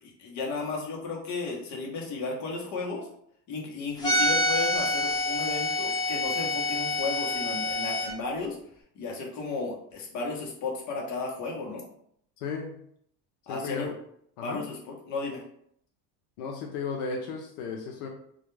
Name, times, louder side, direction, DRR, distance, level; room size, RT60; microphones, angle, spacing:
voice 1, 0.0-3.1 3.5-8.6 8.9-11.8 13.5-13.9 14.4-14.8 15.1-15.4, left 3 dB, 45° left, -1 dB, 0.8 m, -34 dB
sound 1, 4.0-8.1, left 1 dB, 10° left, 0.5 m, -27 dB
voice 2, 12.4-12.8 13.5-13.9 14.4-14.6 16.4-18.1, left 5 dB, 80° left, 1 dB, 0.6 m, -34 dB
2.3 x 2.2 x 3.0 m, 0.69 s
cardioid pair, 125°, 41 cm